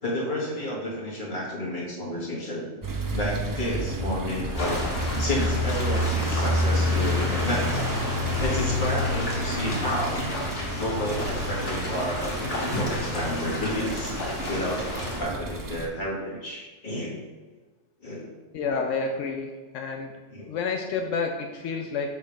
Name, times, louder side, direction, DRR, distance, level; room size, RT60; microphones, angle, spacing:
voice 1, 0.0-2.7 3.1-4.8 5.1-7.8 8.4-10.3 10.8-14.2 14.5-17.2 18.0-18.3 19.0-19.1 20.3-20.5, equal, 40° left, -4 dB, 1.7 m, -31 dB
sound 1, 2.8-15.9, left 1 dB, 30° right, 0.4 m, -29 dB
sound 2, 4.5-15.2, left 1 dB, 70° left, 1.7 m, -32 dB
voice 2, 18.5-19.5 19.7-20.1 20.5-22.1, left 4 dB, 85° left, 3 dB, 1.0 m, -29 dB
6.6 x 3.5 x 5.1 m, 1.3 s
omnidirectional pair, 1.2 m